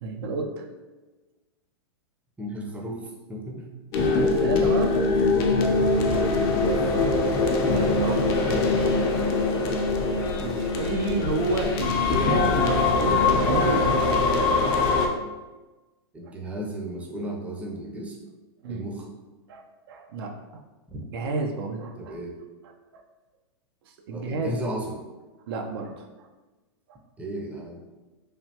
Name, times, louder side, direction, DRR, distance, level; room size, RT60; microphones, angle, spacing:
voice 1, 0.0-0.7 4.0-4.9 7.2-8.9 10.4-14.1 16.2-16.3 18.6-18.9 19.5-20.4 21.1-22.2 22.6-23.0 23.8-24.6 25.5-26.3 26.9-27.0, right 3 dB, 65° right, 3 dB, 0.4 m, -31 dB
voice 2, 2.4-3.7 4.5-4.8 5.9-6.8 7.7-8.0 10.0-10.4 10.9-11.1 16.1-18.2 18.7-19.1 20.9-21.1 22.0-22.3 24.1-25.0 27.2-27.8, right 1 dB, 10° right, -2 dB, 0.5 m, -35 dB
sound 1, 3.9-15.1, left 3 dB, 50° left, 0.5 m, -22 dB
3.2 x 2.3 x 2.7 m, 1.2 s
hypercardioid pair, 110°, 14 cm